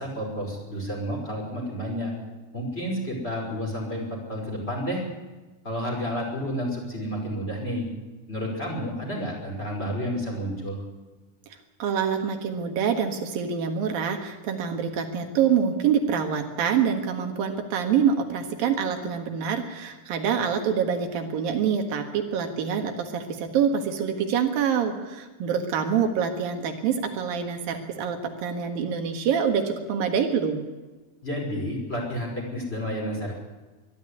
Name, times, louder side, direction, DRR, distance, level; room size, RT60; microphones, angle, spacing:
voice 1, 0.0-2.1 2.5-5.0 5.6-7.8 8.3-10.8 31.2-33.4, equal, 15° left, -2 dB, 5.5 m, -30 dB
voice 2, 11.5-30.6, right 7 dB, 80° right, 5 dB, 3.4 m, -26 dB
22.5 x 12.0 x 9.8 m, 1.2 s
omnidirectional pair, 4.1 m